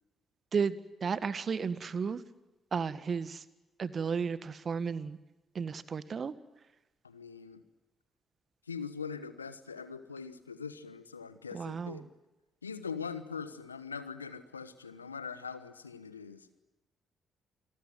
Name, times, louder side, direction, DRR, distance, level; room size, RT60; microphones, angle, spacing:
voice 1, 1.0-2.2 2.7-3.4 3.8-5.2 5.6-6.3 11.5-12.0, right 6 dB, 45° right, 15 dB, 1.7 m, -33 dB
voice 2, 7.0-7.6 8.7-12.0 12.6-16.5, left 5 dB, 90° left, 13 dB, 1.1 m, -42 dB
28.5 x 21.5 x 9.3 m, 1.1 s
figure-of-eight pair, 40°, 0 cm